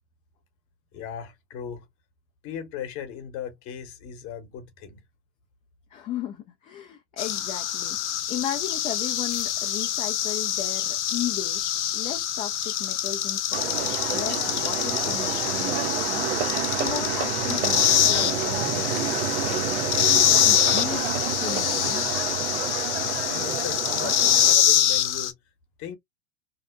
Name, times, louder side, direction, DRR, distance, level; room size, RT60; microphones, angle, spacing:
voice 1, 0.9-1.9 2.4-5.0 22.9-25.4 25.8-26.0, left 8 dB, 40° left, 1.0 m, -37 dB
voice 2, 5.9-16.3 16.6-19.8 20.3-22.0, left 10 dB, 25° left, 0.4 m, -36 dB
sound 1, 7.2-25.3, left 10 dB, 80° left, 0.6 m, -25 dB
sound 2, 13.5-24.5, right 9 dB, 65° right, 0.6 m, -29 dB
2.7 x 2.1 x 2.4 m
hypercardioid pair, 110°, 34 cm